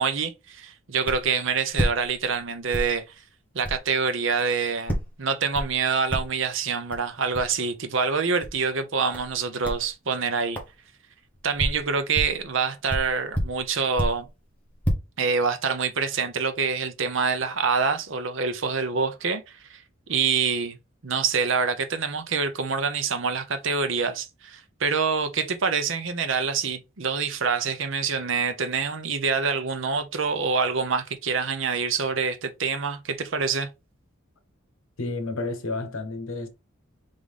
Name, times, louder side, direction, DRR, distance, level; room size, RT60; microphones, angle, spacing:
voice 1, 0.0-3.0 3.5-10.6 11.4-14.3 15.2-19.8 20.1-20.8 21.0-33.7, right 5 dB, 65° right, 0.8 m, -26 dB
sound 1, 1.1-1.3 1.7-2.4 2.7-3.0 3.6-3.8 4.9-5.2 5.5-5.8 6.1-6.5 6.9-7.0 7.3-7.5 8.4-8.6 9.1-9.3 9.6-9.9 10.5-10.7 11.3-12.4 12.9-14.3 14.7-14.9, equal, 10° left, 1.2 m, -29 dB
voice 2, 35.0-36.5, left 2 dB, 85° left, 1.0 m, -31 dB
3.9 x 3.7 x 3.4 m
head